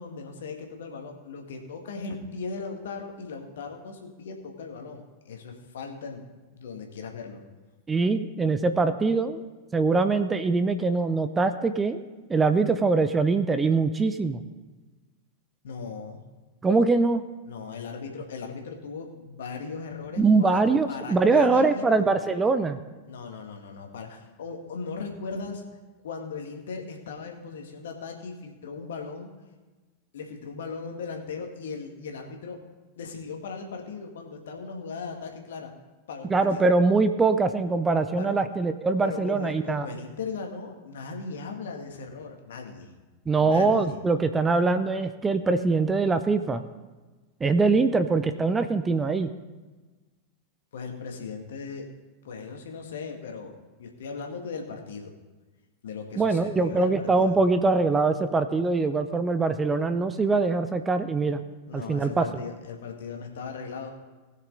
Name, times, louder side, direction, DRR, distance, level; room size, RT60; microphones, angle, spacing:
voice 1, 0.0-6.2 6.5-7.4 15.6-16.2 17.5-20.6 20.9-22.1 23.1-25.6 26.0-29.3 30.1-32.6 33.0-35.7 36.1-36.7 38.1-38.4 39.0-42.9 43.4-44.0 50.7-51.9 52.2-55.1 55.8-57.4 61.7-63.9, left 5 dB, 60° left, 3 dB, 1.8 m, -38 dB
voice 2, 7.9-9.4 9.7-12.0 12.3-14.4 16.6-17.2 20.2-22.8 36.3-39.9 43.3-46.6 47.4-49.3 56.2-61.4 61.7-62.3, right 3 dB, 15° right, 11 dB, 0.6 m, -23 dB
19.5 x 6.7 x 3.9 m, 1.2 s
figure-of-eight pair, 90°, 0 cm